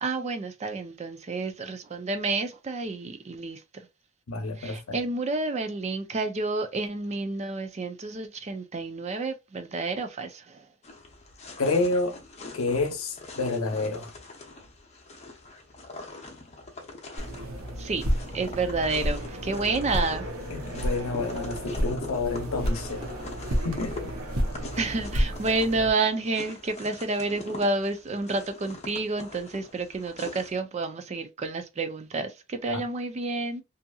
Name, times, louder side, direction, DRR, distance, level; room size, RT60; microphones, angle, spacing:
voice 1, 0.0-3.9 4.6-10.7 17.8-18.0 18.3-20.3 24.8-33.6, right 3 dB, 30° right, 0.4 m, -30 dB
voice 2, 4.3-5.0 11.6-12.2 12.5-14.2 20.5-23.0 23.6-24.1 32.7-32.8, left 3 dB, 75° left, 0.7 m, -29 dB
sound 1, 10.8-30.6, left 2 dB, 30° left, 0.6 m, -43 dB
sound 2, 17.2-25.9, equal, 80° right, 0.8 m, -31 dB
2.7 x 2.6 x 2.3 m
head